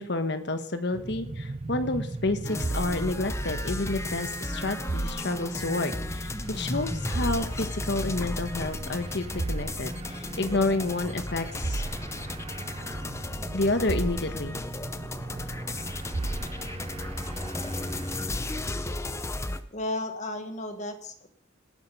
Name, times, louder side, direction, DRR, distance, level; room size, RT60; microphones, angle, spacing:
voice 1, 0.0-11.8 13.5-14.6, left 2 dB, 60° left, 9 dB, 1.3 m, -29 dB
sound 1, 0.9-18.3, right 2 dB, 30° right, 0.5 m, -36 dB
sound 2, 2.4-19.6, left 2 dB, 15° left, 0.7 m, -35 dB
voice 2, 19.7-21.3, left 1 dB, 40° left, 7 dB, 1.6 m, -34 dB
18.5 x 8.7 x 5.5 m, 0.65 s
head